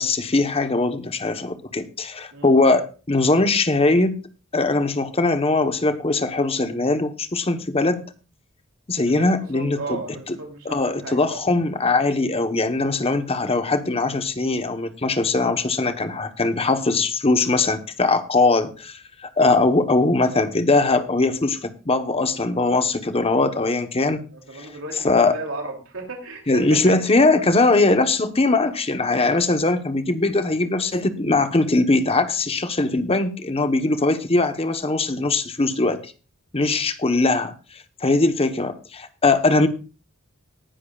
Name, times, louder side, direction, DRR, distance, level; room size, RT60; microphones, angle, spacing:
voice 1, 0.0-4.2 4.5-8.0 8.9-10.0 10.3-10.4 10.6-24.2 25.0-25.3 26.5-36.0 36.5-37.5 38.0-39.7, left 3 dB, 30° left, 9 dB, 1.1 m, -21 dB
voice 2, 9.5-11.4 16.5-16.6 24.3-26.9, right 2 dB, 80° right, 1 dB, 3.0 m, -35 dB
19.0 x 10.5 x 2.4 m, 0.33 s
head